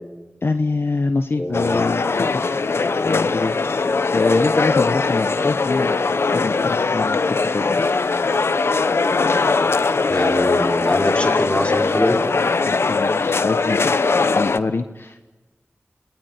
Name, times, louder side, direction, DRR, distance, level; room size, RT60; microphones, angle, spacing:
voice 1, 0.4-6.0 6.3-8.0 12.7-15.3, left 3 dB, 70° left, 8 dB, 1.2 m, -25 dB
voice 2, 1.4-1.8 10.1-12.2, left 1 dB, 25° left, 3 dB, 4.5 m, -23 dB
sound 1, 1.5-14.6, left 4 dB, 85° left, 0.9 m, -20 dB
29.5 x 20.5 x 9.7 m, 1.2 s
wide cardioid pair, 55°, 4 cm